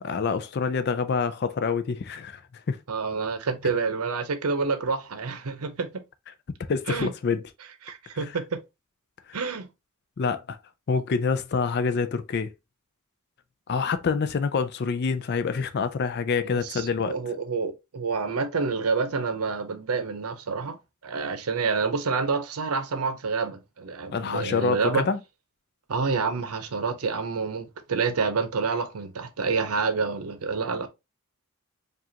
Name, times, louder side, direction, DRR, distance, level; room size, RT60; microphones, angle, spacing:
voice 1, 0.0-2.4 2.7-2.8 6.7-7.4 9.3-9.4 10.2-10.6 10.9-12.5 13.7-17.2 24.1-25.2, left 5 dB, 45° left, 0.4 m, -26 dB
voice 2, 2.9-6.0 6.9-7.1 7.8-8.6 9.3-9.7 16.5-20.8 21.0-25.1 25.9-30.9, right 4 dB, 85° right, 0.7 m, -28 dB
4.9 x 2.4 x 2.8 m
head